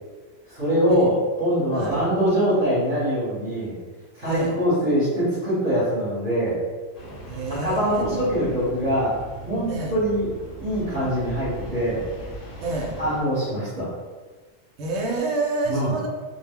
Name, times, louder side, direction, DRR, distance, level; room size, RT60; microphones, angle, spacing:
voice 1, 0.5-3.7 4.1-6.6 7.5-9.2 9.4-10.3 10.6-12.0 13.0-13.9 15.7-15.9, equal, 35° right, -11 dB, 0.9 m, -23 dB
Engine starting, 6.9-13.2, right 2 dB, 65° left, 0.9 m, -38 dB
voice 2, 7.3-8.2 9.7-10.0 12.6-13.0 14.8-16.1, right 2 dB, 70° right, -1 dB, 0.8 m, -28 dB
2.3 x 2.1 x 3.5 m, 1.4 s
omnidirectional pair, 1.3 m